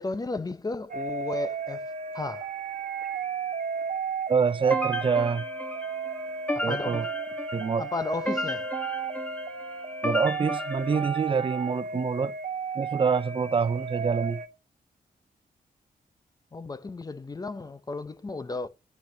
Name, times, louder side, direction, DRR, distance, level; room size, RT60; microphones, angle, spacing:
voice 1, 0.0-1.8 2.1-2.5 6.5-7.1 7.8-8.7 16.5-18.7, left 3 dB, 25° left, 0.6 m, -33 dB
sound 1, 0.9-14.5, right 5 dB, 55° right, 1.3 m, -34 dB
voice 2, 4.3-5.5 6.6-7.1 7.5-7.8 10.0-12.3 12.8-14.4, right 5 dB, 35° right, 0.5 m, -26 dB
sound 2, 4.7-11.6, left 1 dB, 10° left, 1.3 m, -34 dB
13.0 x 8.2 x 2.7 m
wide cardioid pair, 170°, 16 cm